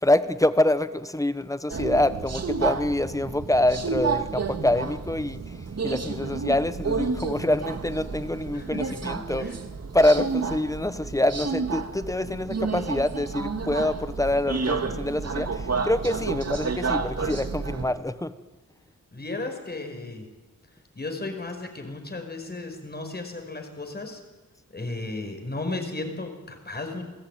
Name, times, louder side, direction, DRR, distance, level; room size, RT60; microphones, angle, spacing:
voice 1, 0.0-5.5 5.8-9.5 9.9-18.3, left 1 dB, 10° left, 13 dB, 1.1 m, -25 dB
Subway metro underground, 1.7-17.9, right 4 dB, 50° right, 2.2 m, -30 dB
voice 2, 8.5-9.0 9.4-9.5 19.1-20.3 21.0-24.2 24.7-27.0, left 2 dB, 30° left, 5 dB, 5.2 m, -34 dB
29.0 x 20.5 x 9.3 m, 1.1 s
wide cardioid pair, 155°, 33 cm